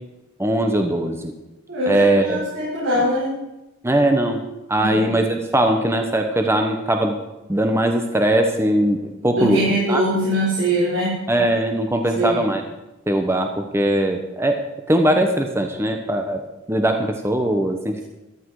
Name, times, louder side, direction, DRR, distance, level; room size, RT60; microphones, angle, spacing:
voice 1, 0.4-1.3 1.9-2.4 3.8-4.4 4.7-7.1 7.5-9.6 9.9-10.0 11.3-12.6 13.1-14.6 14.9-16.4 16.7-18.0, right 1 dB, 15° right, 4 dB, 1.0 m, -20 dB
voice 2, 1.7-3.4 4.8-5.1 9.3-11.2 12.1-12.4, equal, 90° right, -8 dB, 5.9 m, -22 dB
15.0 x 12.5 x 4.8 m, 0.99 s
head